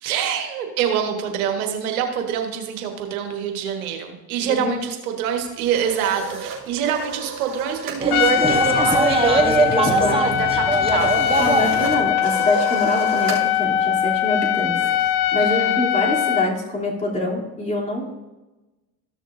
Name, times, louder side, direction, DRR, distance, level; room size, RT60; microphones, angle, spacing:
voice 1, 0.0-11.1 15.4-15.8, right 8 dB, 85° right, 4 dB, 1.5 m, -25 dB
voice 2, 4.4-4.8 9.7-10.2 11.4-14.8 15.3-18.1, left 1 dB, 15° left, -4 dB, 3.1 m, -24 dB
sound 1, 5.4-8.1 8.3-8.6 8.9-15.6, right 4 dB, 40° right, 3.0 m, -34 dB
sound 2, 8.0-12.1, right 3 dB, 15° right, 1.1 m, -22 dB
Trumpet, 8.1-16.5, left 11 dB, 85° left, 0.7 m, -21 dB
14.5 x 6.5 x 2.6 m, 1.1 s
hypercardioid pair, 70°, 42 cm